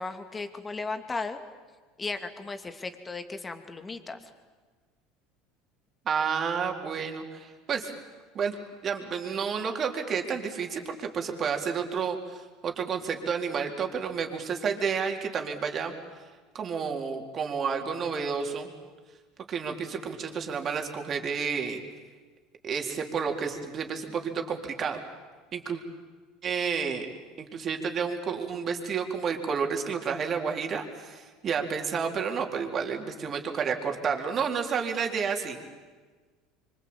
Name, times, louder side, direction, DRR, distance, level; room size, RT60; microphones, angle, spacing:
voice 1, 0.0-1.4 2.0-4.2, left 3 dB, 20° left, 8 dB, 2.7 m, -35 dB
voice 2, 6.1-7.9 8.3-8.6 8.8-15.9 16.5-18.7 19.5-21.8 22.6-25.0 25.5-25.8 26.4-27.1 27.4-35.6, right 6 dB, 40° right, 3 dB, 4.1 m, -30 dB
25.5 x 25.0 x 8.9 m, 1.4 s
hypercardioid pair, 80°, 0 cm